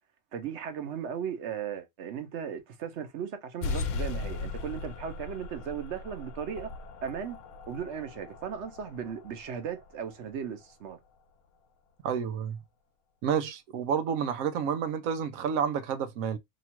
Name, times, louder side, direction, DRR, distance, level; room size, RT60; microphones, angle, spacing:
voice 1, 0.3-6.7 7.0-7.4 7.7-11.0, right 7 dB, 60° right, 1.0 m, -36 dB
sound 1, 3.6-10.7, left 4 dB, 70° left, 0.9 m, -38 dB
voice 2, 12.0-12.6 13.2-16.4, right 7 dB, 90° right, 1.0 m, -30 dB
3.0 x 2.3 x 4.3 m
omnidirectional pair, 1.4 m